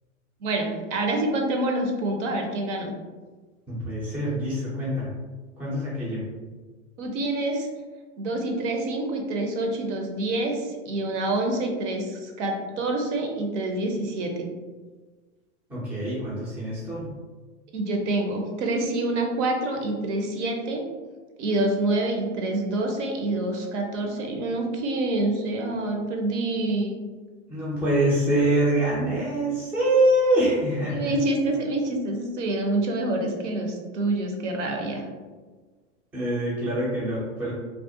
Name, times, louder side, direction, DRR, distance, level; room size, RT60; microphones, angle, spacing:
voice 1, 0.4-2.9 7.0-7.7 8.2-14.5 17.7-20.8 21.4-27.0 30.9-35.0, right 2 dB, 70° right, 2 dB, 0.6 m, -27 dB
voice 2, 3.7-5.1 5.6-6.2 15.7-17.1 27.5-31.1 36.1-37.5, right 1 dB, 5° right, -9 dB, 0.3 m, -24 dB
2.4 x 2.0 x 2.6 m, 1.4 s
hypercardioid pair, 130°, 38 cm